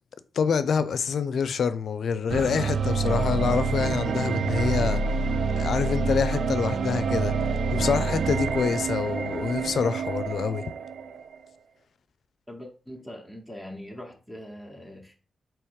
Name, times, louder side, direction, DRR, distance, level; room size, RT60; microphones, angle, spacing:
voice 1, 0.4-5.0 5.6-7.3 7.7-10.6, left 6 dB, 75° left, 0.4 m, -26 dB
sound 1, 2.3-11.4, right 4 dB, 80° right, 0.4 m, -27 dB
voice 2, 12.5-15.1, left 1 dB, 5° right, 1.1 m, -42 dB
3.5 x 2.9 x 4.7 m
cardioid pair, 70°, 0 cm